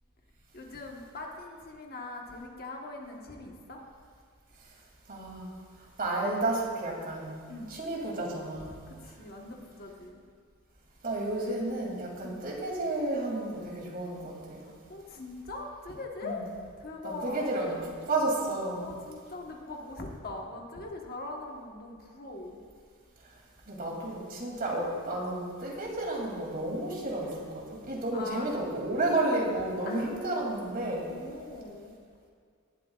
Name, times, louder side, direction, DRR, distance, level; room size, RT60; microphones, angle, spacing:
voice 1, 0.5-3.8 7.5-7.7 8.6-10.2 12.2-12.4 14.6-16.5 16.8-17.5 18.8-22.6 24.4-24.6 28.1-28.7 29.8-30.1 31.0-31.9, left 2 dB, 45° left, 0 dB, 1.3 m, -41 dB
voice 2, 5.1-5.5 6.0-7.3 7.7-8.7 11.0-14.6 16.2-16.4 17.0-17.8 18.1-18.8 23.7-31.1, right 2 dB, 40° right, -2 dB, 2.8 m, -31 dB
18.0 x 12.0 x 2.5 m, 2.2 s
head